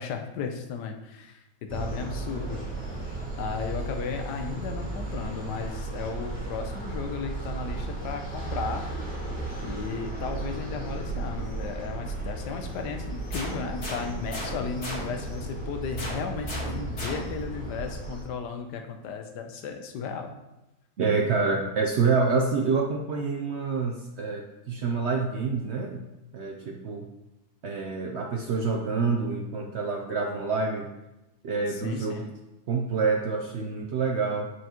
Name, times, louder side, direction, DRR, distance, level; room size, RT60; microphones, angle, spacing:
voice 1, 0.0-2.6 3.4-8.9 9.6-20.3 31.7-32.3, left 5 dB, 90° left, 5 dB, 1.3 m, -35 dB
sound 1, 1.7-18.2, right 2 dB, 35° right, 2.6 m, -35 dB
sound 2, 13.3-15.4 16.0-17.5, left 1 dB, 40° left, 1.9 m, -37 dB
voice 2, 21.0-26.0 26.3-27.1 27.6-30.9 31.4-32.3 32.7-34.5, right 4 dB, 65° right, 2 dB, 0.6 m, -27 dB
7.8 x 4.7 x 3.0 m, 0.97 s
omnidirectional pair, 1.7 m